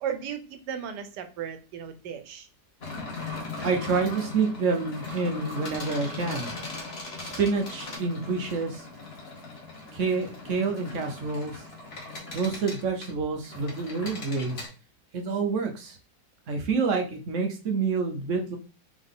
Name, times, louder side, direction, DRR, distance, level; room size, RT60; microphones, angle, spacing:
voice 1, 0.0-2.5, right 8 dB, 85° right, 9 dB, 1.3 m, -35 dB
sound 1, 2.8-14.7, left 3 dB, 40° left, 1.4 m, -39 dB
voice 2, 3.6-6.5 7.2-8.9 9.9-11.6 12.3-14.7 15.1-16.0 16.5-18.6, right 4 dB, 60° right, 4 dB, 0.9 m, -28 dB
3.8 x 3.5 x 3.6 m, 0.33 s
omnidirectional pair, 1.8 m